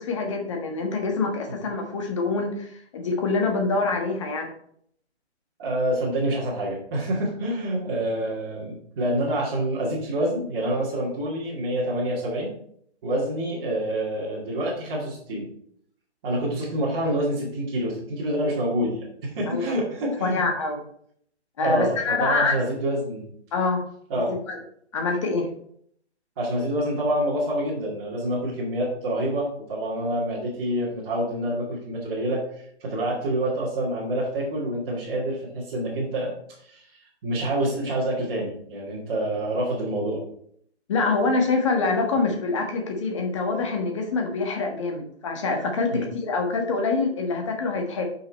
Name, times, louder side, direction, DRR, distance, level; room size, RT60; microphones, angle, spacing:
voice 1, 0.0-4.5 19.5-19.7 20.2-20.8 21.6-22.5 23.5-23.8 24.3-24.6 24.9-25.5 40.9-48.0, left 3 dB, 25° left, 2 dB, 1.5 m, -25 dB
voice 2, 5.6-12.5 13.0-15.5 16.2-20.4 21.6-23.3 24.1-24.3 26.4-36.3 36.6-40.2 45.9-46.1, right 1 dB, 25° right, -8 dB, 2.1 m, -27 dB
7.4 x 5.9 x 4.6 m, 0.66 s
hypercardioid pair, 170°, 34 cm